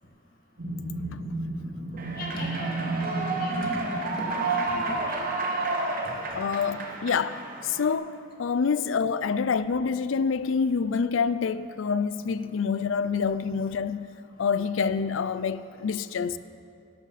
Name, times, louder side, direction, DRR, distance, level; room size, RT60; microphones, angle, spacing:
sound 1, 0.6-4.5, right 2 dB, 65° right, 2.7 m, -33 dB
Human voice / Clapping / Cheering, 2.0-7.9, right 3 dB, 45° right, 1.1 m, -31 dB
voice 1, 2.2-5.2, equal, 45° left, 2.1 m, -37 dB
voice 2, 6.3-14.1 14.4-16.4, left 5 dB, 70° left, 0.4 m, -27 dB
13.5 x 12.0 x 4.1 m
head